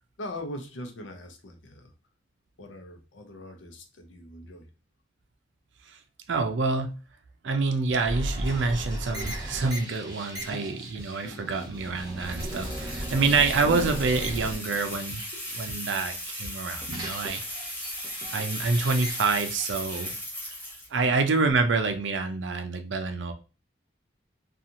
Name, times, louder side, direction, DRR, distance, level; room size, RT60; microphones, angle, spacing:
voice 1, 0.2-1.9 2.6-4.7 21.0-21.1, left 1 dB, 90° left, 0.6 m, -41 dB
voice 2, 6.3-6.9 7.4-15.2 15.5-17.4 18.3-20.1 20.9-23.3, right 4 dB, 80° right, 0.5 m, -27 dB
sound 1, 8.0-16.0 16.3-20.1, equal, 25° right, 0.7 m, -37 dB
sound 2, 8.4-8.5 8.7-8.8 9.4-9.8 10.3-12.3 12.8-12.9 13.3-15.4 15.7-15.8 16.0-16.1 16.4-16.5 16.9-17.0, right 1 dB, 60° left, 1.1 m, -40 dB
sound 3, 12.2-21.0, equal, 10° left, 0.7 m, -37 dB
2.8 x 2.4 x 2.5 m
head